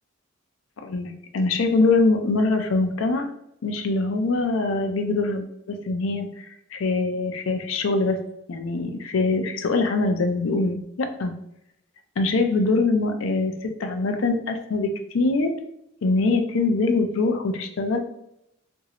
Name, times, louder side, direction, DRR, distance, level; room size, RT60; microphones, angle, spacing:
voice 1, 0.8-3.3 3.6-6.5 6.7-8.2 8.5-11.3 12.2-14.9 15.1-15.5 16.0-18.0, left 3 dB, 75° left, 6 dB, 0.4 m, -23 dB
3.1 x 2.6 x 2.8 m, 0.78 s
head